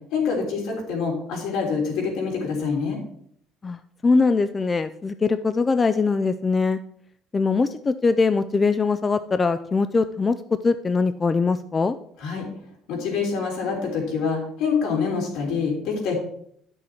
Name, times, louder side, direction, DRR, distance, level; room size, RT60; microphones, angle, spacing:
voice 1, 0.1-3.0 12.2-12.5 12.9-16.1, left 5 dB, 75° left, 0 dB, 3.5 m, -26 dB
voice 2, 3.6-6.8 7.3-10.4 10.6-12.0, left 4 dB, 20° left, 11 dB, 0.3 m, -22 dB
11.5 x 6.3 x 4.4 m, 0.67 s
cardioid pair, 150°, 0 cm